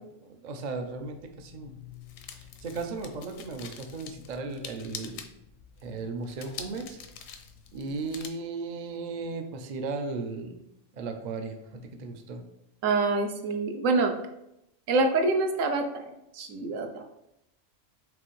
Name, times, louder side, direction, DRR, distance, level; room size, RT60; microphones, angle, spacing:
voice 1, 0.2-1.7 2.3-5.2 5.8-7.0 7.7-10.6 10.9-12.4, right 3 dB, 55° right, 5 dB, 0.5 m, -36 dB
sound 1, 1.0-8.3, left 7 dB, 80° left, 1.0 m, -46 dB
voice 2, 12.8-14.1 14.9-17.1, right 3 dB, 75° right, 5 dB, 1.0 m, -26 dB
5.0 x 3.4 x 3.1 m, 0.84 s
omnidirectional pair, 1.4 m